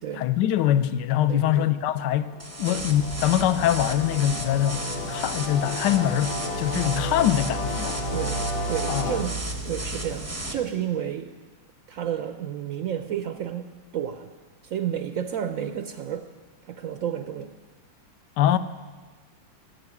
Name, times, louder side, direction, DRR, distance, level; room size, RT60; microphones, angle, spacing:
voice 1, 0.2-2.3 2.6-4.8 5.1-8.0 8.9-9.1 18.4-18.6, left 11 dB, 70° left, 1.2 m, -23 dB
voice 2, 1.3-1.6 2.7-2.9 6.7-7.0 8.1-9.4 9.6-11.3 11.9-13.7 13.9-14.3 14.6-16.3 16.6-17.5, right 9 dB, 75° right, 0.7 m, -31 dB
sound 1, 1.6-9.2, left 2 dB, 90° left, 2.5 m, -34 dB
sound 2, 2.4-10.5, right 2 dB, 25° right, 0.3 m, -36 dB
sound 3, 2.8-10.6, right 2 dB, 55° left, 1.6 m, -35 dB
14.5 x 8.2 x 9.5 m
omnidirectional pair, 2.1 m